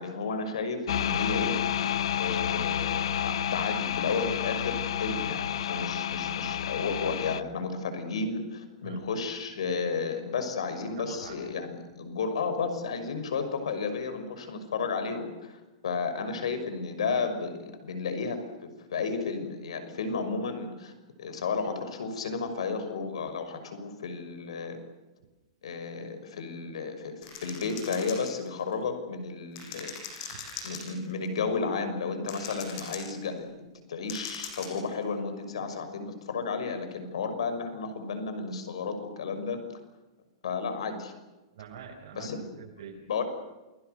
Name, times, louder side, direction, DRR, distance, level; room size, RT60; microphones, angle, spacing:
voice 1, 0.0-1.6 2.2-18.4 18.9-20.9 21.2-24.8 25.6-29.9 30.6-39.6 40.4-41.1 42.1-42.4 43.1-43.2, left 4 dB, 85° left, 9 dB, 6.0 m, -33 dB
sound 1, 0.9-7.4, left 9 dB, 70° left, 1.0 m, -30 dB
voice 2, 11.0-11.4 30.3-30.5 41.5-42.9, right 8 dB, 55° right, -2 dB, 6.0 m, -45 dB
sound 2, 27.2-28.7 29.6-31.3 32.3-33.3 34.1-34.9, left 6 dB, 30° left, 7.7 m, -40 dB
29.0 x 23.0 x 6.8 m, 1.1 s
hypercardioid pair, 165°, 3 cm